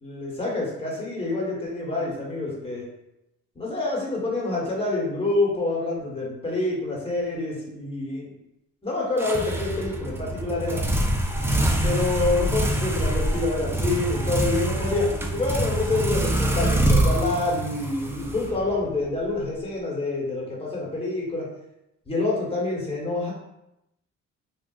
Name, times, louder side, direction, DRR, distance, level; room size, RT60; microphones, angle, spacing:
voice 1, 0.0-2.8 3.5-8.3 8.8-10.8 11.8-21.5 22.1-23.3, left 2 dB, 20° left, -4 dB, 1.2 m, -27 dB
sound 1, 9.2-19.0, right 1 dB, 10° right, 0.3 m, -25 dB
3.7 x 2.3 x 2.4 m, 0.86 s
cardioid pair, 90°, 30 cm